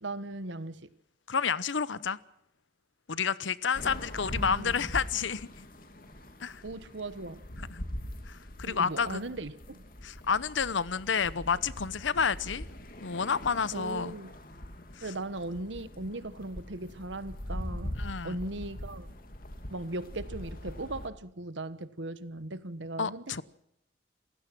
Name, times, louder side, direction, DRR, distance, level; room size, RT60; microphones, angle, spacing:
voice 1, 0.0-0.9 4.4-4.7 6.6-7.4 8.6-9.8 13.7-14.3 15.0-18.0 18.2-19.1 19.7-23.4, right 2 dB, 75° right, 1.3 m, -38 dB
voice 2, 1.3-2.2 3.1-5.7 6.4-6.6 7.7-7.8 8.3-9.2 10.0-12.7 13.0-14.1 18.0-18.4 23.0-23.4, left 6 dB, 80° left, 0.9 m, -30 dB
sound 1, 3.7-21.1, equal, 45° left, 2.6 m, -42 dB
28.5 x 16.0 x 6.1 m
head